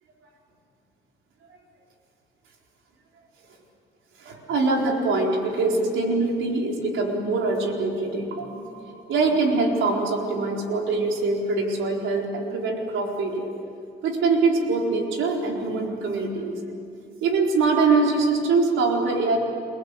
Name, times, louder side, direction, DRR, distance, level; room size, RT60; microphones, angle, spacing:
voice 1, 4.2-8.8 9.1-13.5 14.0-16.5 17.2-19.4, right 3 dB, 80° right, 0 dB, 4.3 m, -23 dB
28.5 x 19.0 x 8.4 m, 2.5 s
cardioid pair, 90°, 20 cm